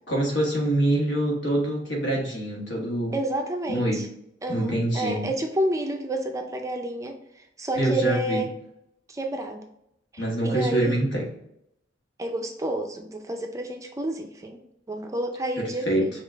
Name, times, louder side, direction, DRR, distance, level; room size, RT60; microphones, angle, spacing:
voice 1, 0.1-3.1 3.7-4.0 4.5-5.3 7.7-8.4 10.2-11.2 15.6-16.1, right 1 dB, 75° left, -2 dB, 1.4 m, -25 dB
voice 2, 3.1-4.1 4.4-7.1 7.6-8.5 9.1-9.6 10.1-11.0 12.2-14.6 14.9-16.1, right 1 dB, 15° right, 4 dB, 0.4 m, -29 dB
5.7 x 2.4 x 3.4 m, 0.77 s
head